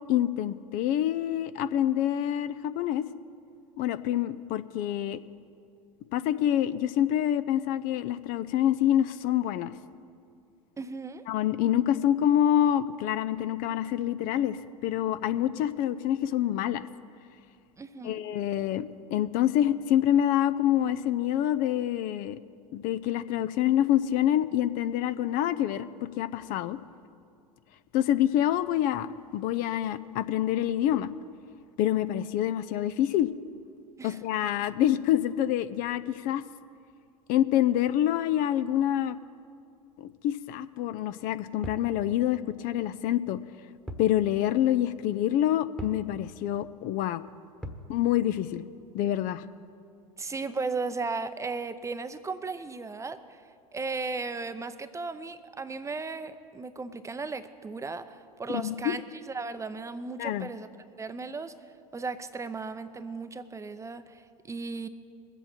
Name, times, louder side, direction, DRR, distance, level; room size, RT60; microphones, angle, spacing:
voice 1, 0.1-3.1 3.8-5.2 6.1-9.7 11.3-16.9 18.0-22.4 22.7-26.8 27.9-31.1 31.8-33.3 34.0-36.4 37.3-39.2 40.0-43.4 44.0-47.2 47.9-48.6 48.9-49.5 58.5-58.9 60.2-60.5, left 11 dB, 45° left, 13 dB, 0.5 m, -26 dB
voice 2, 10.8-11.2 17.8-18.2 34.0-34.2 50.2-53.4 53.7-60.7 61.0-61.5 61.9-64.9, right 4 dB, 15° right, 11 dB, 0.7 m, -36 dB
sound 1, 41.6-41.9 43.9-44.1 44.5-44.6 45.8-46.1 47.6-47.9, equal, 5° left, 1.2 m, -39 dB
22.0 x 8.1 x 4.4 m, 2.3 s
figure-of-eight pair, 80°, 20 cm